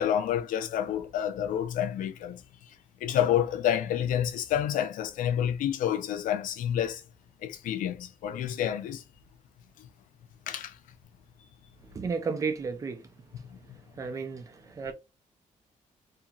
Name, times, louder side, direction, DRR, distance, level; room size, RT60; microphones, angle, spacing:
voice 1, 0.0-2.4 3.0-7.0 7.4-9.0 10.5-10.7, left 10 dB, 85° left, 0.4 m, -28 dB
voice 2, 11.9-13.1 13.9-14.9, right 5 dB, 25° right, 0.4 m, -33 dB
2.8 x 2.6 x 2.3 m
wide cardioid pair, 175°, 13 cm